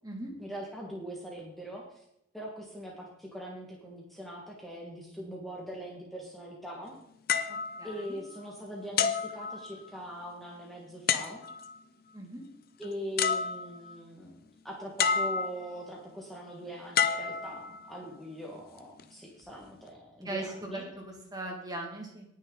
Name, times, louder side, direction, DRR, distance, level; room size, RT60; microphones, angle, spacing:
voice 1, 0.4-2.0 2.3-6.9 7.8-11.4 12.8-20.9, equal, ahead, -3 dB, 1.6 m, -42 dB
sound 1, 7.3-8.5 9.0-10.1 11.1-11.8 12.8-12.9 13.2-14.0 15.0-15.8 16.9-18.1 18.8-19.0, left 6 dB, 50° left, 0.7 m, -30 dB
voice 2, 7.5-8.2 12.1-12.4 20.2-20.8 21.3-22.2, right 2 dB, 20° right, 0 dB, 2.2 m, -39 dB
19.0 x 6.5 x 3.9 m, 0.78 s
head